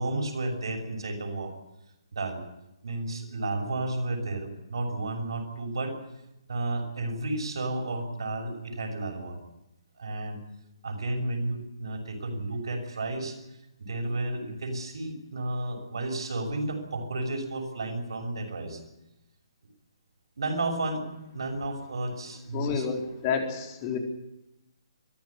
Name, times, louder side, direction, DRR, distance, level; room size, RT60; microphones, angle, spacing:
voice 1, 0.0-1.5 2.1-2.4 2.8-6.0 6.5-9.4 10.0-10.4 10.8-13.4 13.8-18.8 20.4-21.0 21.3-22.9, right 2 dB, 70° right, 4 dB, 6.3 m, -32 dB
voice 2, 22.5-24.0, left 6 dB, 30° left, 2 dB, 4.3 m, -30 dB
23.5 x 14.5 x 9.9 m, 0.90 s
figure-of-eight pair, 140°, 3 cm